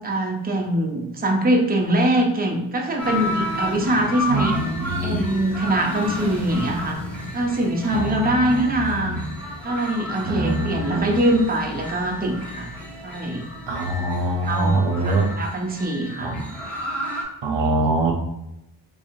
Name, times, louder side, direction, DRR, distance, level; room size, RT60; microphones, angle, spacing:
voice 1, 0.0-4.6 5.0-7.0 7.3-9.2 9.6-12.7 13.0-13.5 14.0-14.1 14.5-16.3, right 1 dB, 20° right, 1 dB, 0.7 m, -23 dB
sound 1, 3.0-17.2, left 1 dB, 5° left, 1.2 m, -32 dB
voice 2, 4.3-5.3 7.9-9.3 10.2-11.2 13.7-15.3 16.2-16.4 17.4-18.1, right 2 dB, 65° right, 2 dB, 0.8 m, -24 dB
3.4 x 3.3 x 2.7 m, 0.86 s
cardioid pair, 55°, 48 cm